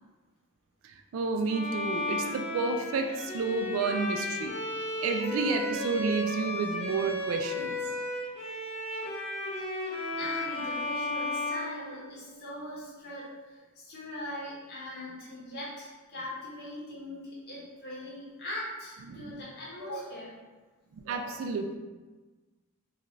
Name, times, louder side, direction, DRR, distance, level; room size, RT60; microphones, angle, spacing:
voice 1, 0.8-4.6 5.0-7.8 19.1-19.4 21.1-21.8, right 4 dB, 75° right, 4 dB, 0.3 m, -31 dB
Bowed string instrument, 1.5-12.5, left 2 dB, 30° left, 0.4 m, -34 dB
voice 2, 10.2-20.3, left 1 dB, 50° left, -7 dB, 0.8 m, -40 dB
2.5 x 2.3 x 3.0 m, 1.3 s
head